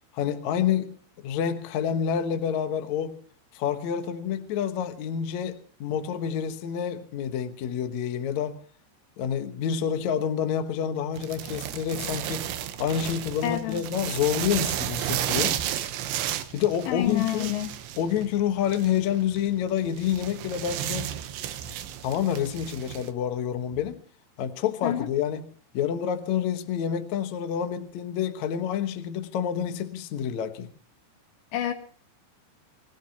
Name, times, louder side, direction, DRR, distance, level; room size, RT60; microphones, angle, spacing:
voice 1, 0.1-0.9 1.2-3.1 3.5-8.6 9.2-12.4 12.8-15.5 16.5-17.5 18.0-21.1 21.6-21.7 22.0-24.0 24.4-25.4 25.7-30.7, left 9 dB, 70° left, 8 dB, 1.8 m, -28 dB
sound 1, 11.2-23.1, right 11 dB, 80° right, 3.3 m, -33 dB
voice 2, 13.4-13.9 16.9-17.7 24.8-25.1 31.5-31.7, left 12 dB, 85° left, 3 dB, 3.8 m, -28 dB
27.0 x 16.5 x 2.9 m, 0.42 s
omnidirectional pair, 5.1 m